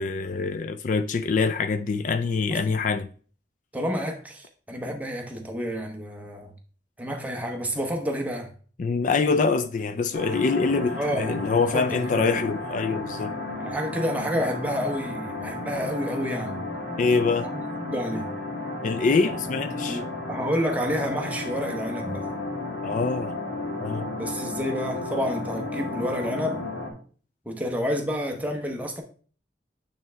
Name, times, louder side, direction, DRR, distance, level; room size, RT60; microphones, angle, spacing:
voice 1, 0.0-3.1 8.8-13.3 17.0-17.5 18.8-20.0 22.8-23.4 23.8-24.1, left 4 dB, 45° left, 0.3 m, -24 dB
voice 2, 3.7-6.5 7.0-8.5 10.9-11.5 11.7-12.3 13.6-16.6 17.5-17.6 17.9-18.3 19.9-22.3 24.2-26.7 27.5-29.0, equal, 10° right, 0.9 m, -29 dB
sound 1, 10.1-26.9, left 2 dB, 85° left, 1.7 m, -33 dB
8.9 x 3.3 x 3.3 m
head